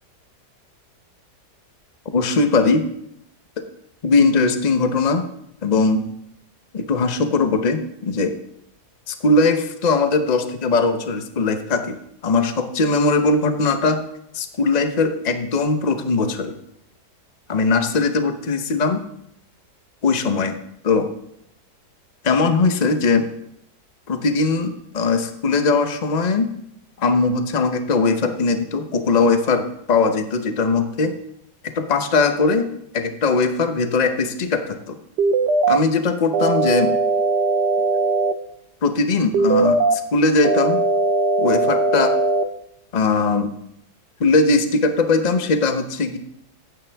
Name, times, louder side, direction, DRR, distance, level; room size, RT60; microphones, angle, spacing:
voice 1, 2.1-2.9 4.0-5.3 5.6-6.0 6.7-8.3 9.1-14.0 14.3-16.5 17.5-19.0 20.0-20.6 20.8-21.1 22.2-23.3 24.1-26.5 27.0-31.2 31.6-32.7 32.9-35.0 35.7-36.9 38.8-40.8 41.4-42.1 42.9-43.5 44.2-46.2, left 3 dB, 35° left, 8 dB, 0.8 m, -20 dB
sound 1, 35.2-35.8 36.3-38.3 39.3-40.0 40.4-42.4, right 3 dB, 90° right, 1.4 m, -19 dB
14.5 x 9.5 x 3.5 m, 0.76 s
omnidirectional pair, 1.7 m